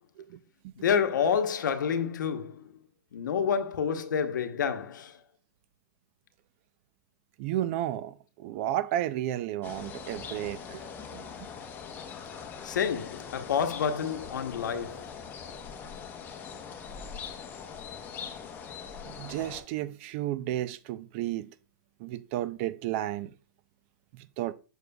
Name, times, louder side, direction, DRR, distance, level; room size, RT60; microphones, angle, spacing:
voice 1, 0.8-2.7 3.1-5.1 12.6-15.1, left 7 dB, 85° left, 0.9 m, -28 dB
voice 2, 7.4-10.8 11.1-11.3 19.0-21.5 22.0-23.3 24.4-24.5, right 13 dB, 40° right, 0.4 m, -32 dB
sound 1, 9.6-19.6, left 6 dB, 20° left, 0.9 m, -42 dB
6.8 x 6.3 x 2.2 m
hypercardioid pair, 150°, 10 cm